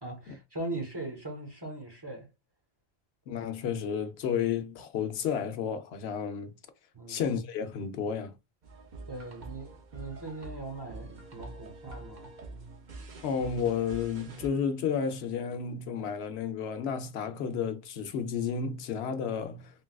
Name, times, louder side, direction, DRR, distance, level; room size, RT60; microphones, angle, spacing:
voice 1, 0.0-2.3 6.9-7.2 9.1-12.3, right 2 dB, 25° right, 1.0 m, -40 dB
voice 2, 3.3-6.5 7.1-8.4 13.2-19.7, left 7 dB, 90° left, 0.9 m, -32 dB
sound 1, 8.6-14.5, right 3 dB, 50° right, 0.7 m, -46 dB
3.7 x 2.3 x 2.3 m
omnidirectional pair, 1.1 m